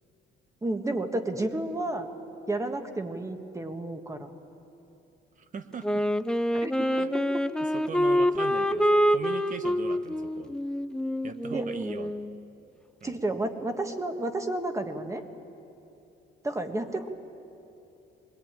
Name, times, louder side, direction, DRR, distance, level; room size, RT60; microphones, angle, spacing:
voice 1, 0.6-2.1 2.5-4.3 6.6-6.9 7.3-7.4 11.5-11.7 13.0-15.2 16.4-17.1, right 2 dB, 15° right, 6 dB, 1.5 m, -31 dB
voice 2, 5.4-6.0 7.0-7.1 7.7-10.6 11.2-12.1 13.0-13.2, right 5 dB, 40° right, 10 dB, 1.2 m, -40 dB
Wind instrument woodwind instrument, 5.8-12.4, equal, 5° left, 0.5 m, -26 dB
22.0 x 21.5 x 9.1 m, 2.9 s
cardioid pair, 130°, 20 cm